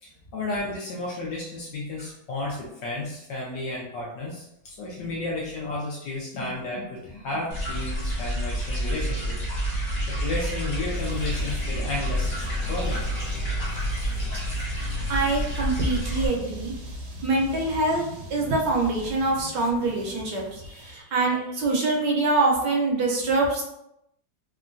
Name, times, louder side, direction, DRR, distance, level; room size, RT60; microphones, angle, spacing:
voice 1, 0.0-13.0, left 2 dB, 75° left, -3 dB, 1.1 m, -33 dB
sound 1, 7.5-16.3, equal, 50° left, 0.5 m, -28 dB
sound 2, 10.6-20.9, left 1 dB, 90° right, 1.5 m, -41 dB
voice 2, 15.1-16.7 17.2-18.0 18.3-23.6, right 2 dB, 70° right, -1 dB, 1.2 m, -24 dB
3.6 x 2.2 x 2.5 m, 0.81 s
omnidirectional pair, 2.1 m